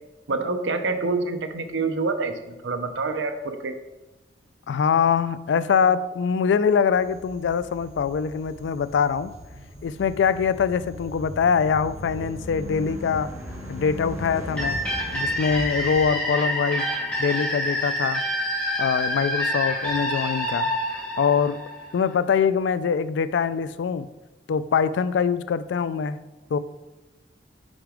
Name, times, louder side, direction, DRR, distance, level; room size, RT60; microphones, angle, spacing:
voice 1, 0.3-2.3 2.6-3.7, right 3 dB, 80° right, 7 dB, 0.7 m, -26 dB
voice 2, 4.7-9.3 9.8-13.3 13.7-14.8 15.1-16.9 17.2-18.2 18.8-20.7 21.2-21.6 21.9-24.1 24.5-26.2 26.5-26.6, left 6 dB, 70° left, 15 dB, 0.3 m, -23 dB
sound 1, 7.0-16.1, equal, 35° right, 1.7 m, -40 dB
Car passing by / Truck / Engine, 11.3-19.6, left 1 dB, 15° right, 1.7 m, -42 dB
sound 2, 14.6-22.1, equal, 10° left, 2.4 m, -27 dB
6.2 x 4.9 x 4.9 m, 1.1 s
head